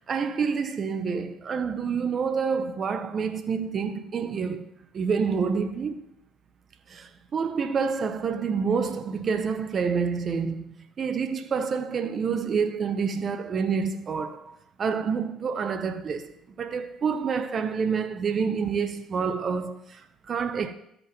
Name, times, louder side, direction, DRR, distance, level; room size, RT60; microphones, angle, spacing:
voice 1, 0.0-4.7 4.9-6.0 6.9-20.7, right 5 dB, 45° right, 0.7 m, -28 dB
13.5 x 5.2 x 3.0 m
hypercardioid pair, 65°, 0 cm